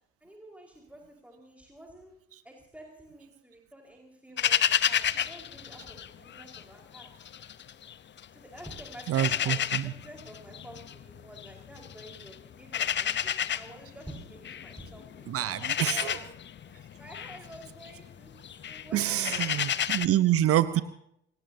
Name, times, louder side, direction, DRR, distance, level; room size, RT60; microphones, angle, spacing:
voice 1, 0.2-2.1 2.4-7.1 8.3-16.2 16.7-19.4 20.7-20.8, right 1 dB, 5° right, 0 dB, 4.9 m, -49 dB
sound 1, 4.4-6.6 6.9-8.2 8.6-20.1, left 9 dB, 35° left, 0.9 m, -31 dB
voice 2, 9.1-9.9 15.3-16.3 18.9-20.8, right 12 dB, 45° right, 15 dB, 0.9 m, -27 dB
28.5 x 17.5 x 2.9 m, 0.73 s
figure-of-eight pair, 50°, 32 cm